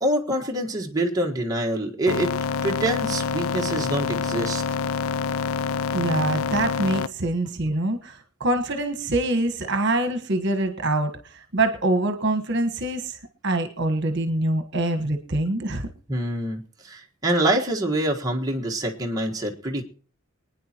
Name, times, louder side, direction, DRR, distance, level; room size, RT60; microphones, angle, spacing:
voice 1, 0.0-2.3 2.6-4.6 5.9-6.0 16.1-19.8, right 1 dB, 15° right, 0 dB, 1.5 m, -25 dB
sound 1, 2.1-7.1, left 6 dB, 70° left, 0.5 m, -26 dB
voice 2, 5.9-13.2 13.4-15.9, right 2 dB, 50° right, 6 dB, 1.4 m, -25 dB
24.5 x 9.7 x 3.0 m, 0.43 s
head